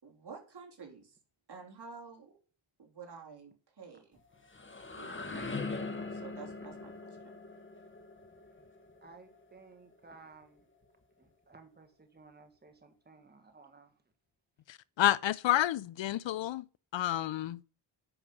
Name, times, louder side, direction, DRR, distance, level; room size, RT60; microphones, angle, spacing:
voice 1, 0.0-1.2 1.5-2.4 2.8-4.2 5.0-5.5 5.9-6.9, right 5 dB, 55° right, 3.5 m, -50 dB
sound 1, 4.2-9.9, left 3 dB, 25° left, 1.6 m, -42 dB
voice 2, 9.0-10.7 11.2-13.9, right 4 dB, 20° right, 1.6 m, -56 dB
voice 3, 14.7-16.6 16.9-17.6, left 13 dB, 65° left, 0.5 m, -29 dB
10.0 x 5.7 x 6.3 m
cardioid pair, 80°, 49 cm